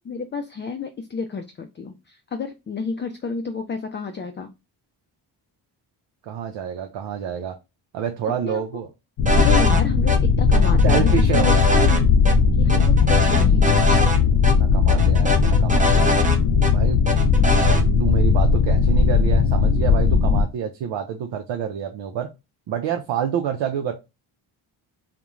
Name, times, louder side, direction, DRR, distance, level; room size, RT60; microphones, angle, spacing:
voice 1, 0.0-4.5 8.4-8.6 9.3-11.5 11.8-12.1 12.6-13.8, left 5 dB, 25° left, 5 dB, 0.4 m, -30 dB
voice 2, 6.2-7.5 7.9-8.9 10.8-11.9 14.5-16.2 16.7-17.0 18.0-22.3 22.7-23.9, right 8 dB, 70° right, 5 dB, 0.6 m, -28 dB
sound 1, 9.2-20.4, left 5 dB, 75° left, 0.6 m, -17 dB
sound 2, 9.3-9.8 10.1-10.2 10.5-12.0 12.3-12.4 12.7-14.2 14.4-14.5 14.9-16.7 17.1-17.8, equal, 15° right, 0.6 m, -23 dB
2.3 x 2.1 x 3.0 m, 0.25 s
supercardioid pair, 50°, 46 cm